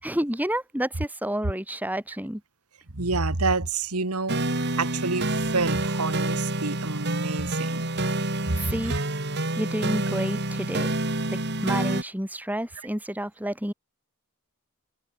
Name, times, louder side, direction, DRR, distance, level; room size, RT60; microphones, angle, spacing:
voice 1, 0.0-2.4 8.3-8.9 9.6-10.9 11.3-13.7, right 1 dB, 5° right, 4.4 m, -30 dB
voice 2, 2.9-4.4 4.8-7.9 8.5-9.0, right 3 dB, 85° right, 2.1 m, -28 dB
sound 1, 4.3-12.0, right 2 dB, 50° right, 4.3 m, -28 dB
head